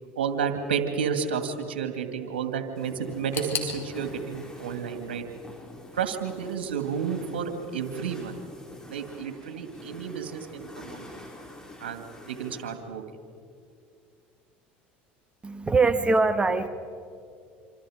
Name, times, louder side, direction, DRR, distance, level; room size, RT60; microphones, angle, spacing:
voice 1, 0.2-5.2 5.9-8.4 8.9-11.2 11.8-13.0, right 7 dB, 85° right, 7 dB, 2.2 m, -31 dB
sound 1, 2.7-12.7, left 1 dB, 10° left, 5.3 m, -46 dB
sound 2, 3.3-6.2 6.5-7.3 7.6-7.7 8.5-8.6, left 7 dB, 45° left, 4.5 m, -39 dB
voice 2, 15.4-16.7, right 3 dB, 20° right, 10 dB, 1.4 m, -22 dB
26.5 x 26.5 x 5.1 m, 2.3 s
hypercardioid pair, 80°, 6 cm